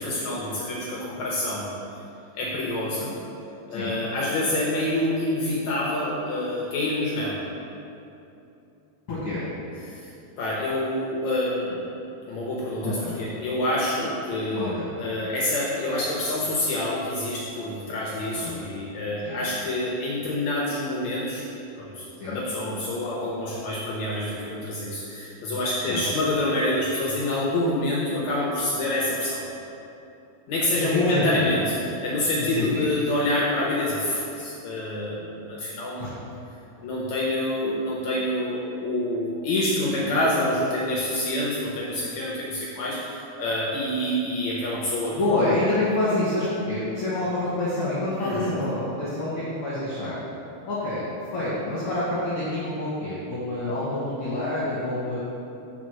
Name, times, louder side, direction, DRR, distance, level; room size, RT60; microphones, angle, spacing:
voice 1, 0.0-1.7 2.3-3.2 3.7-7.4 9.8-10.1 10.4-11.8 12.3-21.5 21.8-29.4 30.5-31.6 32.0-36.2 36.8-45.2 48.2-48.5, left 1 dB, 80° left, -4 dB, 1.6 m, -27 dB
voice 2, 9.1-9.4 12.8-13.2 14.5-14.9 18.3-18.6 19.2-19.4 22.2-22.4 25.9-26.0 30.8-31.6 32.4-32.8 36.0-36.1 45.1-50.2 50.7-51.0 51.3-55.2, left 2 dB, 55° left, -9 dB, 1.6 m, -27 dB
5.1 x 4.6 x 6.2 m, 2.8 s
omnidirectional pair, 4.2 m